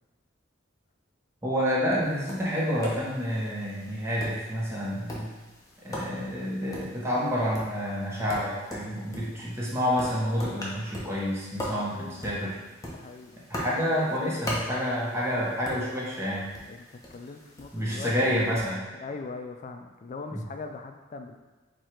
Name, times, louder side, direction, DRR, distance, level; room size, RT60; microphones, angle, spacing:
voice 1, 1.4-5.3 5.8-12.6 13.5-16.5 17.7-18.8 20.3-20.4, equal, 15° right, -6 dB, 0.9 m, -29 dB
Tap, 2.0-18.8, left 1 dB, 20° left, 0.7 m, -41 dB
voice 2, 11.7-12.4 12.9-15.3 16.7-18.5 18.9-21.4, left 4 dB, 40° left, 5 dB, 0.3 m, -42 dB
4.7 x 2.4 x 4.4 m, 1.2 s
head